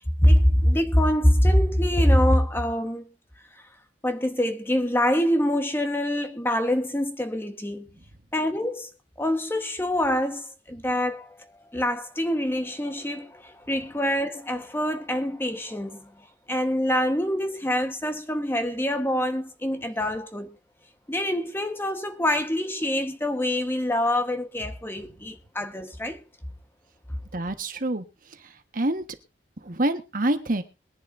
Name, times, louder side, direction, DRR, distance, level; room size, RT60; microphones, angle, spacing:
voice 1, 0.2-3.1 4.0-7.9 8.3-8.9 9.2-11.4 11.7-16.1 16.5-20.5 21.1-26.2, left 1 dB, 15° left, 1.2 m, -24 dB
voice 2, 27.3-28.0 28.7-29.0 29.6-30.6, right 1 dB, 50° right, 1.3 m, -26 dB
22.5 x 10.5 x 2.6 m
head